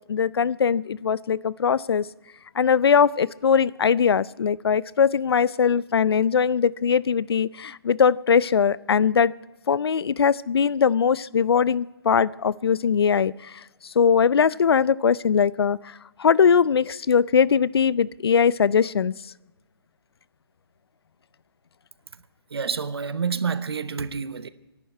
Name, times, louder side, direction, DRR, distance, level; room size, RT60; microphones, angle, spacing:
voice 1, 0.1-2.0 2.6-9.3 9.7-13.3 14.0-15.8 16.2-19.1, left 6 dB, 75° left, 0.5 m, -20 dB
voice 2, 22.5-24.5, right 5 dB, 80° right, 1.0 m, -28 dB
25.0 x 11.5 x 4.4 m
hypercardioid pair, 175°, 13 cm